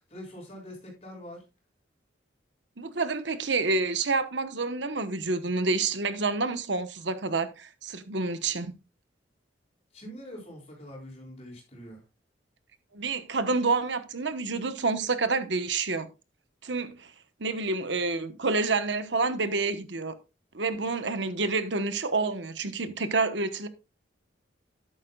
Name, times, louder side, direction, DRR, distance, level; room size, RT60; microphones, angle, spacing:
voice 1, 0.1-1.4 9.9-12.0, equal, 35° left, 7.2 m, -44 dB
voice 2, 2.8-8.7 12.9-16.1 16.6-17.1 17.4-20.1 20.5-23.7, right 3 dB, 75° right, 1.1 m, -28 dB
13.0 x 11.5 x 2.3 m
head